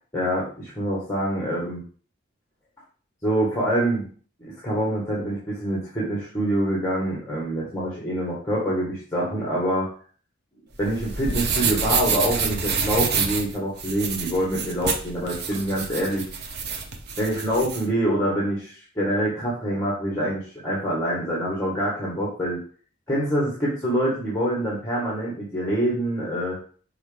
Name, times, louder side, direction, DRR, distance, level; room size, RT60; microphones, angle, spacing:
voice 1, 0.1-1.8 3.2-4.1 4.4-9.9 10.8-16.3 17.2-22.6 23.1-26.6, right 1 dB, 15° left, -5 dB, 1.7 m, -25 dB
sound 1, 10.7-17.8, right 5 dB, 55° right, 0.9 m, -27 dB
6.2 x 4.8 x 3.5 m, 0.42 s
head